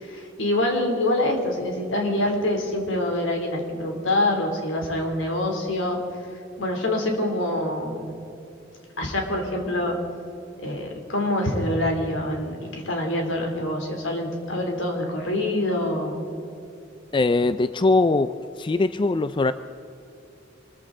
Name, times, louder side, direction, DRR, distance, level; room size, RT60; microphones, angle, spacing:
voice 1, 0.0-6.0 6.6-8.1 9.0-10.0 10.6-16.2, left 1 dB, 85° left, 2 dB, 3.2 m, -25 dB
voice 2, 17.1-18.3 18.6-19.5, left 3 dB, 25° left, 12 dB, 0.4 m, -21 dB
25.5 x 14.5 x 3.9 m, 2.7 s
head